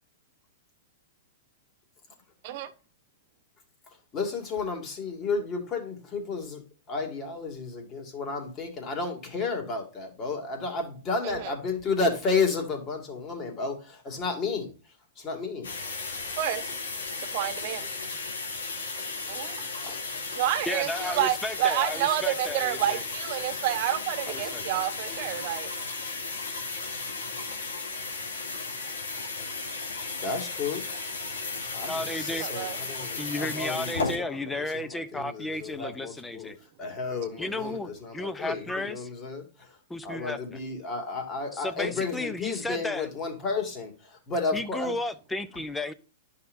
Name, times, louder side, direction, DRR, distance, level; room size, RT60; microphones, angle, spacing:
voice 1, 4.1-6.6 6.9-14.7 15.2-15.7 19.7-20.0 30.2-30.8 31.7-36.5 36.8-39.8 40.0-44.9, left 4 dB, 30° left, 2.5 m, -32 dB
sound 1, 15.6-34.2, left 3 dB, 80° left, 2.3 m, -35 dB
voice 2, 17.2-17.9 19.3-19.7 20.4-25.7 32.4-32.8, right 12 dB, 55° right, 1.1 m, -29 dB
voice 3, 20.7-23.0 24.3-24.8 31.9-32.5 33.2-36.6 37.4-39.1 39.9-40.6 41.5-43.1 44.5-45.9, left 2 dB, 10° left, 0.7 m, -33 dB
10.5 x 5.7 x 2.7 m
hypercardioid pair, 115°, 0 cm